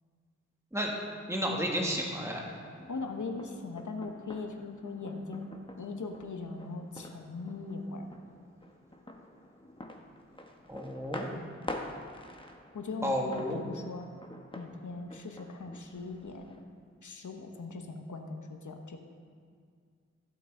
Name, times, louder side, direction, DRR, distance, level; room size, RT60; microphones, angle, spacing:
voice 1, 1.3-2.5 10.7-11.3 13.0-13.6, equal, 10° right, -1 dB, 1.6 m, -32 dB
sound 1, 1.7-16.6, left 1 dB, 15° left, 1.1 m, -47 dB
voice 2, 2.9-5.5 5.7-8.1 12.7-14.1 14.5-16.5 17.0-19.0, left 3 dB, 85° left, 4 dB, 1.0 m, -40 dB
15.5 x 8.4 x 3.8 m, 2.1 s
wide cardioid pair, 50°, 29 cm